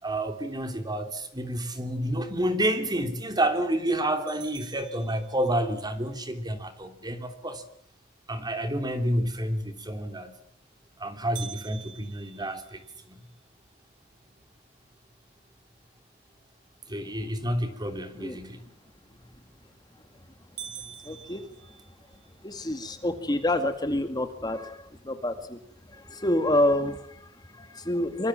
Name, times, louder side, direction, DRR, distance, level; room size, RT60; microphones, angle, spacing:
voice 1, 0.0-7.6 8.3-10.4 11.0-12.8 13.1-13.2 16.9-18.6, right 1 dB, 20° right, 3.2 m, -29 dB
sound 1, 4.3-5.8 11.3-13.5 14.0-14.1 14.6-14.7 15.4-15.7 19.3-19.7 20.1-20.2 20.6-22.3, right 9 dB, 65° right, 3.1 m, -45 dB
voice 2, 21.0-21.5 22.4-25.6 25.9-28.3, left 1 dB, 20° left, 2.1 m, -28 dB
25.0 x 25.0 x 7.6 m
head